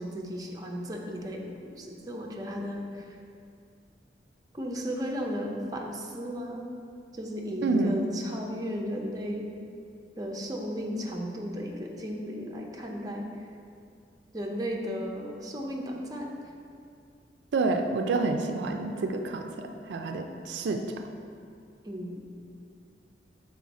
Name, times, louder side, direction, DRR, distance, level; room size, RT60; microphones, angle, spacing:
voice 1, 0.0-3.2 4.5-6.7 7.1-9.5 10.2-13.3 14.3-16.4 21.8-22.2, equal, 20° right, 0 dB, 0.6 m, -35 dB
voice 2, 7.6-8.1 17.5-19.5 19.9-20.8, right 3 dB, 80° right, 5 dB, 0.4 m, -28 dB
6.2 x 4.2 x 4.0 m, 2.4 s
head